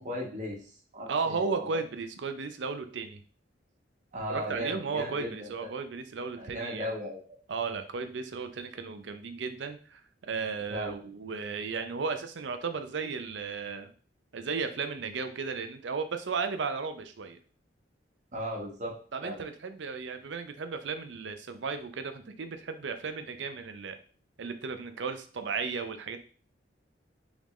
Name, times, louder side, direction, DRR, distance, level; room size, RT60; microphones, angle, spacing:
voice 1, 0.0-1.7 4.1-5.5 6.4-7.2 10.7-11.0 18.3-18.9 19.2-19.4, equal, 40° right, -1 dB, 1.1 m, -36 dB
voice 2, 1.1-3.2 4.3-6.9 7.5-13.9 14.3-17.4 19.1-24.0 24.4-26.2, right 5 dB, 75° right, 8 dB, 0.5 m, -35 dB
3.6 x 3.5 x 3.1 m, 0.42 s
head